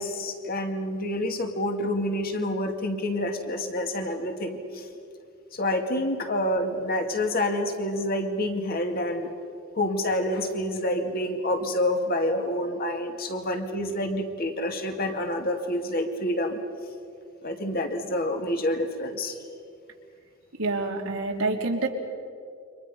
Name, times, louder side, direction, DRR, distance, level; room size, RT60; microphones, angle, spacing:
voice 1, 0.0-4.9 5.5-9.3 9.8-16.6 17.4-19.4, left 1 dB, 45° left, 5 dB, 2.3 m, -28 dB
voice 2, 20.6-21.9, right 3 dB, 90° right, 1 dB, 3.0 m, -27 dB
29.0 x 25.0 x 5.6 m, 2.3 s
head